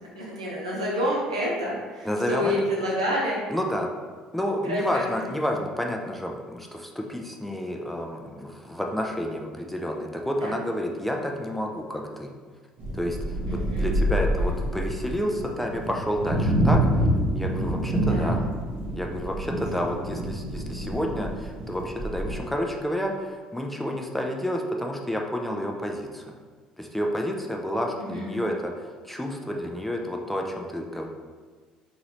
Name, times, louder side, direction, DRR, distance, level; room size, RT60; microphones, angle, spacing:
voice 1, 0.1-3.4 4.6-5.3 10.4-10.5 13.5-14.0 14.2-14.5 18.0-18.5 20.7-21.0 28.0-28.4, equal, 85° right, -5 dB, 0.7 m, -29 dB
voice 2, 2.0-2.5 3.5-3.9 4.3-12.3 12.9-13.4 13.7-16.8 17.3-18.4 19.0-26.3 26.8-31.1, equal, 5° left, 1 dB, 0.5 m, -30 dB
sound 1, 12.8-22.4, right 1 dB, 50° right, 0.9 m, -27 dB
3.8 x 2.5 x 3.1 m, 1.5 s
figure-of-eight pair, 55°, 3 cm